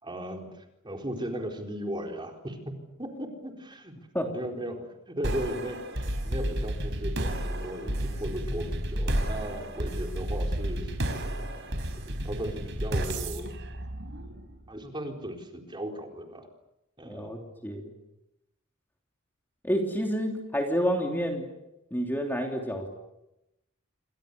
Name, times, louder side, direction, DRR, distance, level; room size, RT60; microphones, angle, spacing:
voice 1, 0.0-3.9 4.3-11.5 12.0-13.6 14.7-16.5 17.0-17.3, equal, 25° right, 2 dB, 4.3 m, -37 dB
sound 1, 5.2-14.7, right 1 dB, 60° right, 4.8 m, -32 dB
voice 2, 17.0-17.9 19.6-21.4 21.9-22.9, equal, 10° left, 2 dB, 3.3 m, -29 dB
28.5 x 26.0 x 6.9 m, 0.89 s
head